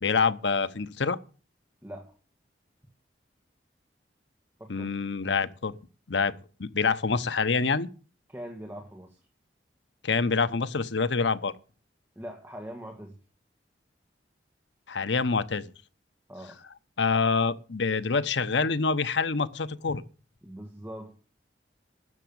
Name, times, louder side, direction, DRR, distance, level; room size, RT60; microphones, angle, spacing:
voice 1, 0.0-1.2 4.7-5.7 6.1-6.3 6.6-7.9 10.0-11.5 14.9-15.7 17.0-20.0, left 4 dB, 80° left, 0.9 m, -26 dB
voice 2, 1.8-2.1 4.6-4.9 8.3-9.2 12.2-13.2 16.3-16.6 20.4-21.1, equal, 10° right, 1.9 m, -42 dB
12.5 x 8.1 x 8.7 m
head